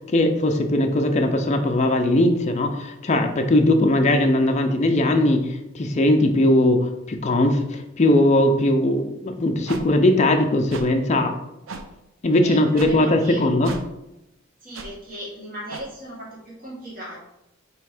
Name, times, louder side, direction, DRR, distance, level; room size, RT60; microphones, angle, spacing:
voice 1, 0.1-11.3 12.2-13.7, left 1 dB, 35° left, 4 dB, 0.5 m, -19 dB
sound 1, 9.7-9.8 10.7-10.9 11.7-11.8 12.8-12.9 13.6-13.8 14.7-14.9 15.7-15.8, right 3 dB, 70° right, 0.5 m, -35 dB
voice 2, 12.4-13.5 14.6-17.2, equal, 45° right, -6 dB, 1.7 m, -37 dB
3.4 x 3.2 x 4.8 m, 0.88 s
head